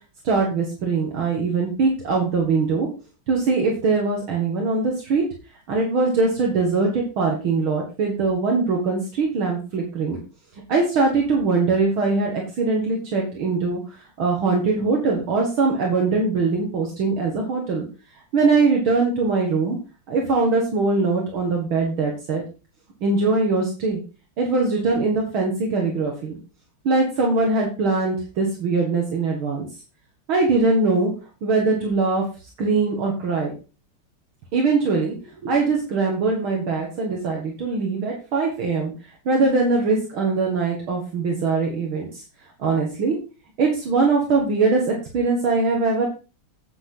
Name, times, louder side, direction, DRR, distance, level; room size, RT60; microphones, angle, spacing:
voice 1, 0.2-2.9 3.3-5.2 5.7-10.2 10.7-17.8 18.3-19.8 20.1-22.4 23.0-24.0 24.4-26.3 26.8-29.7 30.3-31.1 31.4-32.3 32.6-33.5 34.5-35.1 35.4-38.9 39.3-42.2 42.6-43.2 43.6-46.1, right 3 dB, 70° right, 0 dB, 2.5 m, -22 dB
8.8 x 8.6 x 3.8 m, 0.33 s
omnidirectional pair, 2.4 m